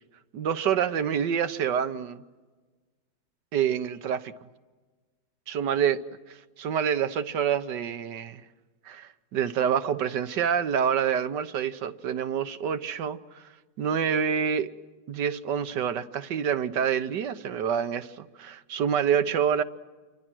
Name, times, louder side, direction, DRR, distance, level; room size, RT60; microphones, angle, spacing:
voice 1, 0.3-2.2 3.5-4.3 5.5-6.0 6.3-8.4 8.8-13.4 13.8-14.7 15.1-19.6, right 8 dB, 80° right, 1.6 m, -27 dB
29.0 x 24.5 x 6.2 m
omnidirectional pair, 1.9 m